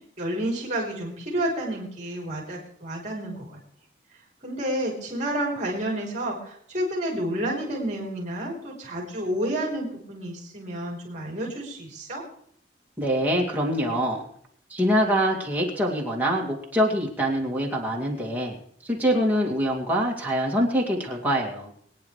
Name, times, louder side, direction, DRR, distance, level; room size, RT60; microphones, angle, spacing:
voice 1, 0.2-3.6 4.4-12.2, right 1 dB, 40° right, -2 dB, 3.8 m, -30 dB
voice 2, 13.0-14.3 14.7-18.6 18.8-21.7, equal, 10° right, -2 dB, 2.4 m, -24 dB
23.5 x 9.8 x 3.3 m, 0.65 s
head